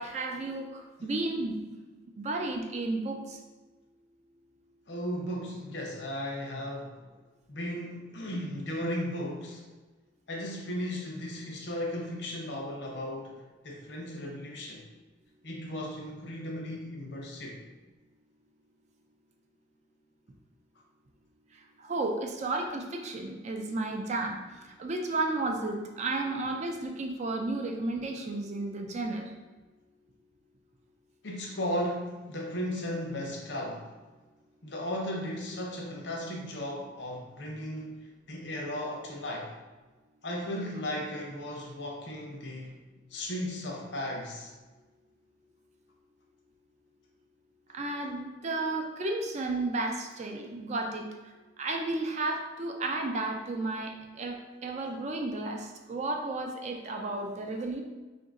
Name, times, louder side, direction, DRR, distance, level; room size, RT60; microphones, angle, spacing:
voice 1, 0.0-1.6 2.2-3.4 21.8-24.4 24.8-29.3 47.7-51.1 51.6-57.8, right 2 dB, 40° right, 3 dB, 0.4 m, -33 dB
voice 2, 4.9-7.0 7.5-9.6 10.3-13.3 13.6-14.8 15.4-17.6 31.2-33.9 34.6-37.9 38.3-39.5 40.2-42.8 43.1-44.5, left 1 dB, 65° left, 0 dB, 0.8 m, -35 dB
3.8 x 2.6 x 3.6 m, 1.2 s
head